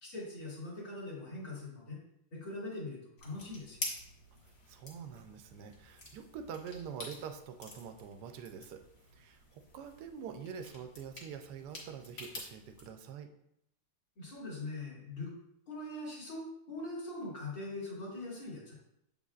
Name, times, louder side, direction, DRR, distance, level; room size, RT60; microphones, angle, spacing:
voice 1, 0.0-2.0 2.3-3.8 14.2-15.3 15.7-18.7, left 2 dB, 60° left, -6 dB, 2.7 m, -42 dB
sound 1, 3.2-12.9, left 2 dB, 45° left, 1.4 m, -48 dB
voice 2, 4.7-8.8 9.1-13.3, right 7 dB, 75° right, 6 dB, 1.0 m, -45 dB
7.3 x 5.3 x 2.4 m, 0.80 s
omnidirectional pair, 2.3 m